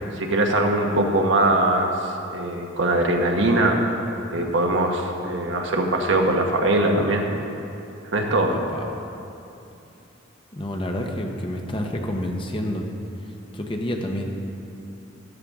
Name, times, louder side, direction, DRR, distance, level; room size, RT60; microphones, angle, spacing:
voice 1, 0.2-1.9 2.3-3.9 4.3-7.3 8.0-8.6, right 1 dB, 70° right, 1 dB, 1.1 m, -21 dB
voice 2, 8.5-9.0 10.5-12.9 13.5-14.3, left 1 dB, 25° left, 2 dB, 0.9 m, -29 dB
13.0 x 11.5 x 3.7 m, 2.7 s
head